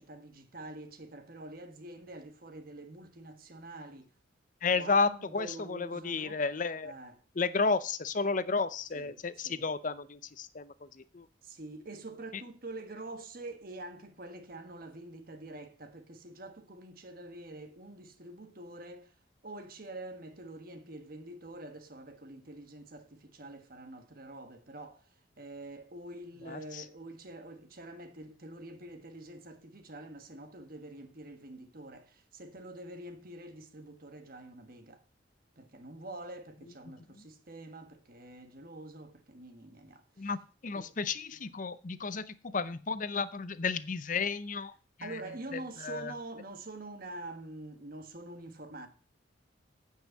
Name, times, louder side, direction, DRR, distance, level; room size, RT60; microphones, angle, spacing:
voice 1, 0.0-4.1 4.7-6.4 6.8-7.2 8.9-9.6 11.4-19.1 19.4-25.1 25.4-35.0 35.6-40.3 40.7-40.9 45.0-48.9, right 2 dB, 50° right, 1.3 m, -46 dB
voice 2, 4.6-6.9 7.4-11.3 12.3-12.4 26.4-26.8 36.9-37.2 40.2-44.7 45.0-45.2 45.5-46.1, left 4 dB, 40° left, 0.6 m, -33 dB
9.1 x 5.6 x 7.5 m
head